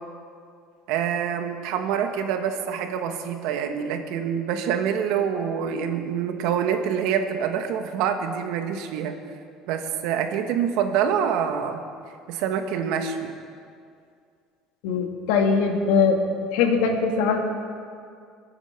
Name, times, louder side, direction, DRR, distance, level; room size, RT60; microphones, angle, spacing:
voice 1, 0.9-9.2 9.7-11.8 12.3-13.3, right 8 dB, 70° right, 6 dB, 1.4 m, -26 dB
voice 2, 14.8-16.2 16.5-17.4, left 5 dB, 80° left, 3 dB, 2.0 m, -21 dB
22.5 x 8.8 x 5.8 m, 2.3 s
cardioid pair, 155°, 0 cm